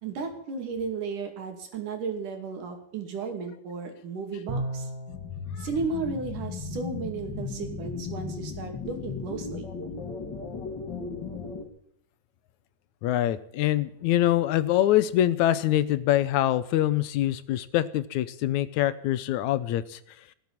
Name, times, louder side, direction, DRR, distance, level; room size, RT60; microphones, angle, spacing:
voice 1, 0.0-4.9 5.6-9.7, right 4 dB, 85° right, 4 dB, 4.1 m, -34 dB
Bowed string instrument, 4.5-5.4, right 1 dB, 15° right, 1.1 m, -33 dB
sound 1, 5.1-11.6, left 5 dB, 35° left, 2.7 m, -36 dB
voice 2, 13.0-20.0, left 13 dB, 75° left, 15 dB, 2.1 m, -24 dB
18.5 x 8.0 x 8.7 m, 0.70 s
omnidirectional pair, 3.5 m